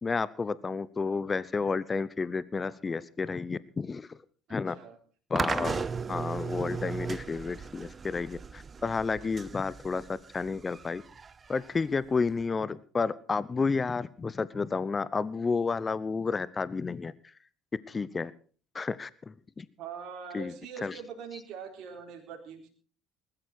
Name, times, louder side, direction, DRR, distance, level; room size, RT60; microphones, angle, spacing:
voice 1, 0.0-4.2 4.5-4.8 5.3-5.8 6.1-11.0 11.5-17.1 17.9-18.3 18.7-19.7 20.3-20.5 20.8-20.9, left 4 dB, 30° left, 19 dB, 0.8 m, -31 dB
voice 2, 4.5-5.0 19.8-22.7, right 6 dB, 60° right, 2 dB, 4.1 m, -43 dB
sound 1, 5.4-12.4, right 5 dB, 30° right, 0.8 m, -37 dB
20.5 x 13.0 x 4.4 m, 0.41 s
hypercardioid pair, 60°, 0 cm